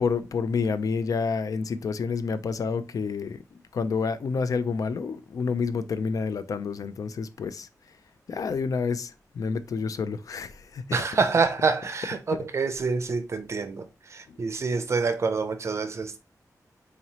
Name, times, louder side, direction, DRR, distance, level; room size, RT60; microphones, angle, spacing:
voice 1, 0.0-3.4 3.7-7.7 8.3-10.9 12.3-12.4 14.3-14.4, left 5 dB, 65° left, 0.3 m, -29 dB
voice 2, 10.9-16.2, right 4 dB, 45° right, 0.4 m, -27 dB
3.8 x 3.0 x 2.7 m
wide cardioid pair, 170°, 6 cm